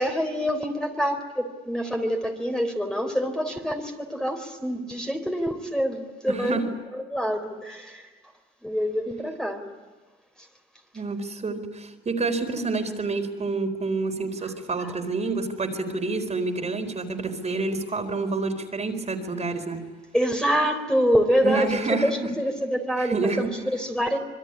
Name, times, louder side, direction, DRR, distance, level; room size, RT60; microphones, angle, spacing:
voice 1, 0.0-8.1 8.6-9.6 14.8-14.9 20.1-24.2, equal, 5° left, 3 dB, 3.9 m, -26 dB
voice 2, 6.3-6.7 10.9-19.9 21.4-22.3 23.0-23.5, right 3 dB, 35° right, 5 dB, 4.3 m, -28 dB
26.0 x 22.5 x 9.8 m, 1.3 s
cardioid pair, 90°, 20 cm